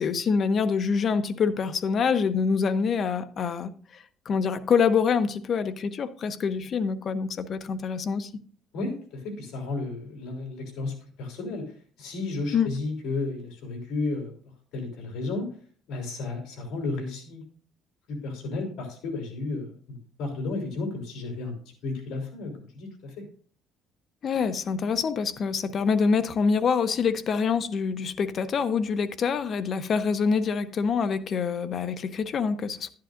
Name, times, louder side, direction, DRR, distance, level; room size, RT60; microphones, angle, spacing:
voice 1, 0.0-8.3 12.5-12.7 24.2-32.9, left 5 dB, 45° left, 0.7 m, -26 dB
voice 2, 8.7-14.3 14.7-15.5 15.9-17.4 18.1-21.5 21.8-23.2, left 3 dB, 75° left, 3.3 m, -33 dB
11.0 x 10.5 x 2.5 m
cardioid pair, 115°, 0 cm